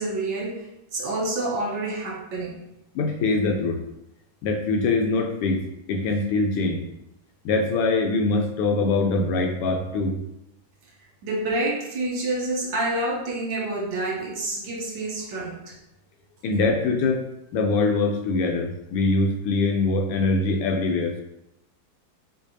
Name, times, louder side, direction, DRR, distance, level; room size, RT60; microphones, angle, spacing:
voice 1, 0.0-2.6 11.2-15.8, right 2 dB, 65° right, -3 dB, 1.5 m, -28 dB
voice 2, 2.9-3.8 4.4-5.6 5.9-6.8 7.4-10.2 16.4-17.3 17.5-21.2, left 3 dB, 90° left, 4 dB, 1.6 m, -23 dB
5.9 x 3.2 x 2.7 m, 0.85 s
omnidirectional pair, 2.4 m